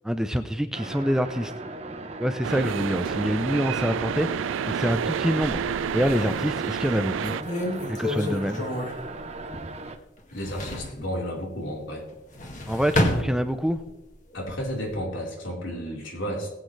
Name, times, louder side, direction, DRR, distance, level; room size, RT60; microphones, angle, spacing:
voice 1, 0.0-1.5 2.2-7.3 7.9-8.6 12.7-13.8, equal, 5° right, 9 dB, 0.5 m, -26 dB
sound 1, 0.7-10.0, right 2 dB, 35° right, 0.9 m, -38 dB
sound 2, 2.4-7.4, right 8 dB, 80° right, 0.3 m, -29 dB
sound 3, 5.3-6.3 6.8-6.9 7.2-9.9 10.2-11.0 12.1-13.9 14.3-15.0, left 1 dB, 40° left, 2.0 m, -30 dB
voice 2, 10.3-12.0 14.3-16.5, equal, 80° left, -2 dB, 4.1 m, -32 dB
20.5 x 8.6 x 3.3 m, 1.0 s
head